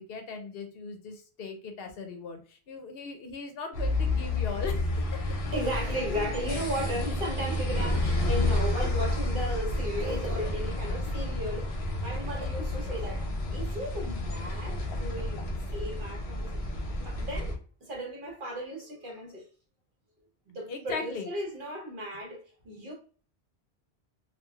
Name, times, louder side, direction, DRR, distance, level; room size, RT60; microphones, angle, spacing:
voice 1, 0.0-4.9 20.7-21.3, left 4 dB, 70° left, 0.8 m, -38 dB
sound 1, 3.7-17.6, left 1 dB, 50° left, 0.4 m, -30 dB
voice 2, 5.5-17.5 17.8-19.4 20.5-22.9, equal, 55° right, 1.0 m, -36 dB
2.9 x 2.3 x 2.2 m
omnidirectional pair, 1.1 m